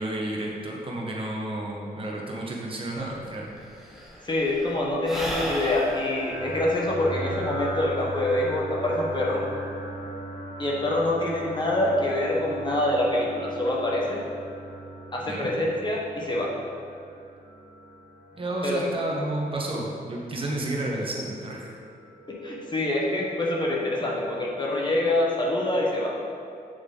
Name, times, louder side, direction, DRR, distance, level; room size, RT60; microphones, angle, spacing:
voice 1, 0.0-3.5 15.2-15.5 18.3-21.7, right 1 dB, 35° right, -2 dB, 1.2 m, -31 dB
Sigh / Breathing, 3.0-3.1 3.3-8.0, equal, ahead, 1.0 m, -35 dB
voice 2, 4.2-9.4 10.6-14.2 15.1-16.5 18.6-18.8 22.3-26.1, left 1 dB, 30° left, -3 dB, 1.2 m, -25 dB
sound 1, 5.4-25.1, right 1 dB, 85° right, 1.8 m, -40 dB
8.1 x 7.2 x 3.8 m, 2.4 s
wide cardioid pair, 175°, 16 cm